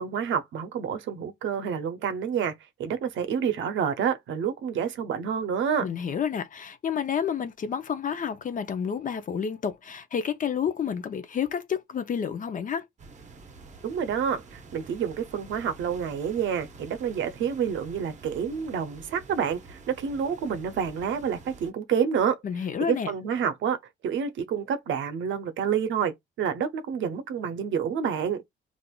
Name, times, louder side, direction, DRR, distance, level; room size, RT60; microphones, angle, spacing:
voice 1, 0.0-2.5 2.8-5.9 13.8-22.4 22.9-23.8 24.0-28.4, right 7 dB, 75° right, 0.6 m, -28 dB
voice 2, 5.8-12.8 22.4-23.1, left 7 dB, 40° left, 0.5 m, -30 dB
sound 1, 13.0-21.7, right 4 dB, 35° right, 0.7 m, -48 dB
3.4 x 2.5 x 2.3 m
cardioid pair, 90°, 20 cm